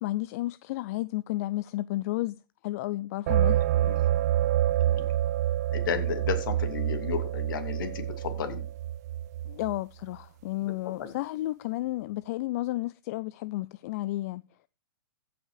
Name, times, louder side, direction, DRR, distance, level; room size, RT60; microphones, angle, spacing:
voice 1, 0.0-2.4 2.6-3.6 9.5-14.4, left 17 dB, 40° left, 0.4 m, -32 dB
sound 1, 3.3-9.8, right 12 dB, 45° right, 0.5 m, -27 dB
voice 2, 3.4-3.9 4.8-5.1 5.7-8.6 11.0-11.1, left 8 dB, 60° left, 2.8 m, -33 dB
15.0 x 5.8 x 4.8 m
hypercardioid pair, 140°, 12 cm